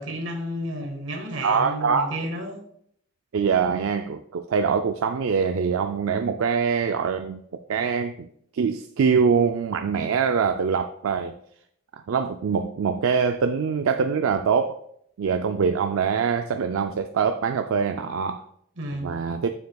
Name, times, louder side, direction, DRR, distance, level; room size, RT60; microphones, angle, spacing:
voice 1, 0.0-2.6 18.8-19.1, equal, 65° right, 1.5 m, -32 dB
voice 2, 1.4-2.2 3.3-8.3 8.5-11.3 12.1-14.8 15.2-18.4 19.0-19.5, right 6 dB, 85° right, 0.4 m, -24 dB
9.4 x 7.0 x 2.3 m
head